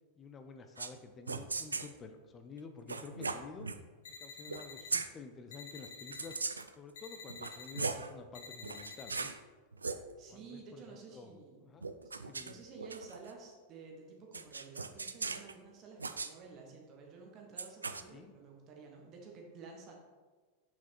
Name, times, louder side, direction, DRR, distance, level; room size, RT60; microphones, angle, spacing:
voice 1, 0.2-3.7 4.2-9.3 10.3-11.9 12.2-12.6 18.1-18.3, left 4 dB, 25° left, 7 dB, 0.5 m, -50 dB
sound 1, 0.8-1.0 1.3-1.9 2.9-3.8 4.5-5.1 6.1-6.7 7.3-8.1 8.6-9.4 9.7-10.0 11.8-13.3 14.3-15.5 16.0-16.3 17.6-18.0, right 4 dB, 75° right, 0.3 m, -38 dB
sound 2, 4.0-4.9 5.5-6.4 6.9-7.8 8.3-9.2, left 5 dB, 60° left, 0.7 m, -49 dB
voice 2, 10.2-11.7 12.0-12.1 12.4-19.9, right 4 dB, 35° right, 0 dB, 1.0 m, -52 dB
5.8 x 4.6 x 4.3 m, 1.4 s
figure-of-eight pair, 90°, 0 cm